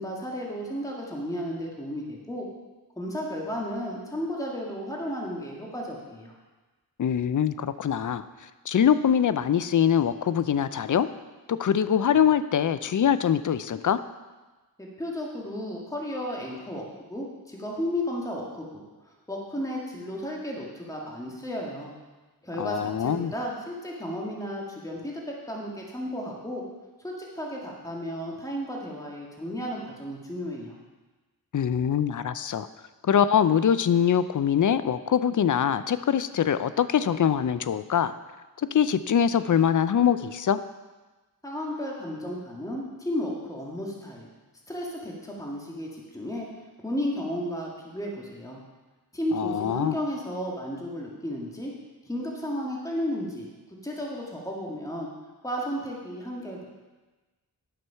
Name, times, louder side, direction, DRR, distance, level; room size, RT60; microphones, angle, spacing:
voice 1, 0.0-2.5 3.0-6.4 14.8-18.8 19.3-21.9 22.4-26.6 27.0-30.7 41.4-44.3 44.7-46.5 46.8-48.6 49.1-51.7 52.0-53.5 53.8-55.1 55.4-56.6, equal, 10° left, -3 dB, 1.9 m, -33 dB
voice 2, 7.0-8.3 8.7-11.1 11.5-14.0 22.6-23.3 31.5-32.7 33.0-38.1 38.6-40.6 49.3-50.0, left 8 dB, 50° left, 13 dB, 0.5 m, -23 dB
9.9 x 6.1 x 5.6 m, 1.2 s
cardioid pair, 60°, 38 cm